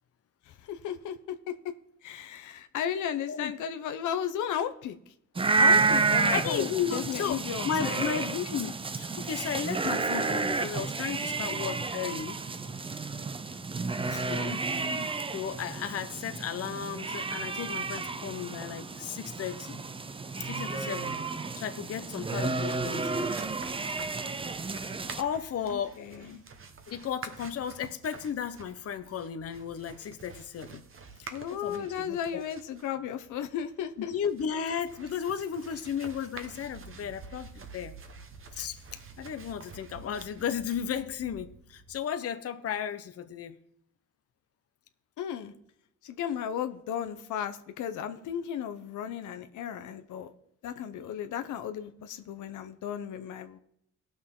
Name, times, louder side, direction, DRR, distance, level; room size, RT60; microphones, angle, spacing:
voice 1, 0.5-1.2 1.5-1.7 2.0-5.1 5.6-8.2 14.2-15.1 25.6-26.4 31.3-34.1 45.2-45.5 46.0-50.3 50.6-53.6, left 9 dB, 80° left, 9 dB, 0.9 m, -35 dB
sound 1, 5.3-25.2, right 4 dB, 20° right, 0.5 m, -31 dB
voice 2, 6.3-12.4 14.1-14.6 15.3-19.8 20.4-21.2 21.6-23.3 25.2-26.1 26.9-30.8 31.2-32.4 34.1-37.9 38.5-38.8 39.2-43.6, left 8 dB, 50° left, 9 dB, 0.8 m, -34 dB
sound 2, 22.0-42.0, right 5 dB, 45° right, 1.3 m, -49 dB
18.0 x 6.4 x 3.7 m, 0.74 s
cardioid pair, 90°, 30 cm